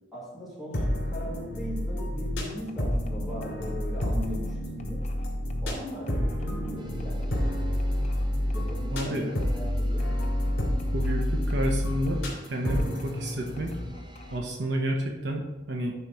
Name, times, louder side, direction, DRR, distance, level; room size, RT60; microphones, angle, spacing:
voice 1, 0.1-5.0 5.6-7.8 8.5-10.1, equal, ahead, -8 dB, 2.4 m, -39 dB
sound 1, 0.7-13.9, equal, 65° left, 2.7 m, -29 dB
sound 2, 2.5-12.5 12.8-14.6, left 2 dB, 35° left, 0.7 m, -48 dB
sound 3, 6.8-14.4, equal, 25° right, 0.7 m, -49 dB
voice 2, 8.9-9.3 10.9-12.2 12.5-13.7 14.3-15.9, right 1 dB, 65° right, 1 dB, 1.0 m, -30 dB
10.5 x 4.1 x 4.7 m, 1.1 s
head